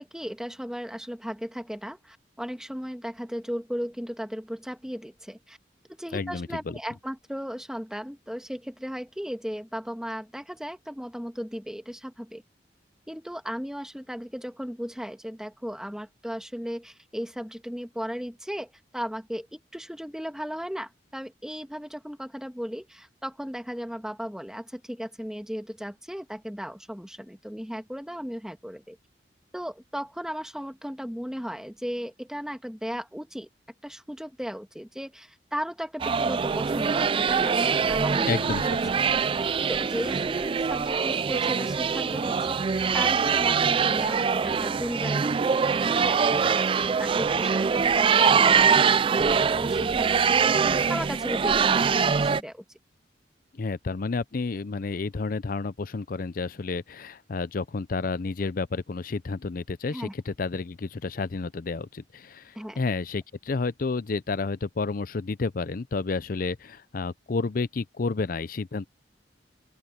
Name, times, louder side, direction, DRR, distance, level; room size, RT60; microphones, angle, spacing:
voice 1, 0.0-5.6 5.9-12.4 13.1-29.0 29.5-33.5 33.8-38.4 38.6-38.8 39.2-45.6 45.8-52.6 59.9-60.1 62.5-62.8, equal, 5° right, 1.7 m, -36 dB
voice 2, 6.1-6.8 38.2-38.8 53.5-68.9, left 4 dB, 50° left, 0.5 m, -30 dB
sound 1, 36.0-52.4, right 6 dB, 30° right, 0.3 m, -23 dB
open air
head